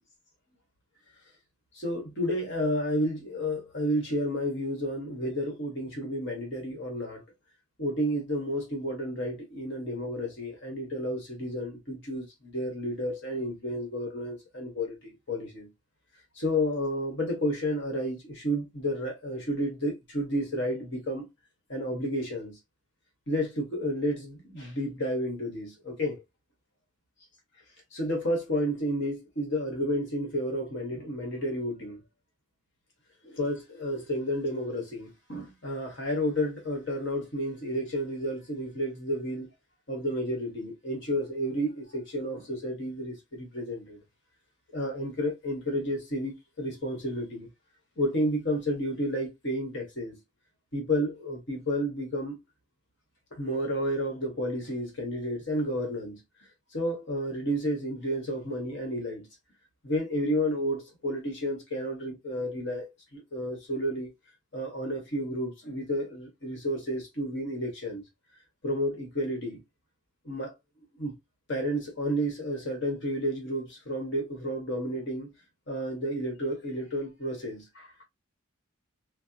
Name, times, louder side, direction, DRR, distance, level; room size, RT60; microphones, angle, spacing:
voice 1, 1.7-7.2 7.8-15.7 16.4-21.2 21.7-22.6 23.3-26.2 27.9-32.0 33.2-39.5 39.9-44.0 44.7-47.5 48.0-50.2 50.7-52.3 53.3-56.2 56.7-59.3 59.8-64.1 64.5-68.0 68.6-69.6 70.2-70.5 71.0-71.1 71.5-75.3 75.7-78.0, equal, 60° left, 1.3 m, -31 dB
4.4 x 2.0 x 2.7 m
head